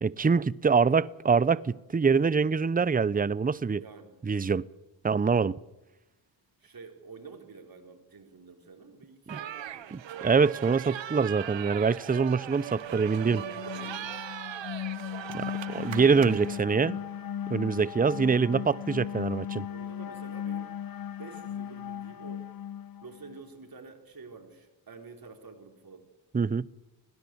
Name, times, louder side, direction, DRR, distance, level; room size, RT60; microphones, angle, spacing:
voice 1, 0.0-3.8 4.2-4.6 5.0-5.6 9.9-13.4 15.3-17.0 17.5-19.7 26.3-26.7, right 5 dB, 20° right, 0.7 m, -25 dB
voice 2, 3.8-4.2 6.6-10.0 13.4-14.3 19.7-20.7 21.2-22.5 23.0-26.1, right 4 dB, 45° right, 4.5 m, -48 dB
sound 1, 9.3-16.6, right 11 dB, 65° right, 1.0 m, -39 dB
sound 2, 12.9-23.4, left 10 dB, 45° left, 0.7 m, -37 dB
21.0 x 17.0 x 8.0 m
cardioid pair, 65°, 47 cm